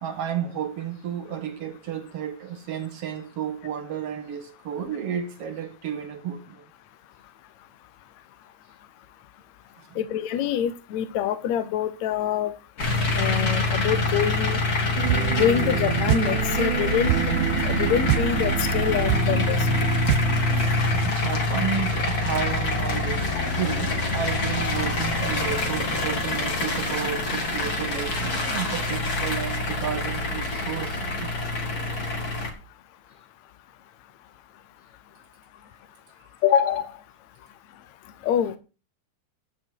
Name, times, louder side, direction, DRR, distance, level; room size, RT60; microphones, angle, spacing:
voice 1, 0.0-6.7 9.9-10.0 21.0-31.3, right 8 dB, 60° right, 1.8 m, -32 dB
voice 2, 10.0-12.5 13.2-14.6 15.4-17.4 17.7-19.6 36.4-36.9 38.2-38.6, left 9 dB, 70° left, 2.0 m, -25 dB
sound 1, 12.8-32.5, left 2 dB, 30° left, 2.4 m, -26 dB
sound 2, 15.0-21.1, right 14 dB, 75° right, 2.0 m, -27 dB
11.5 x 9.1 x 4.7 m
omnidirectional pair, 3.7 m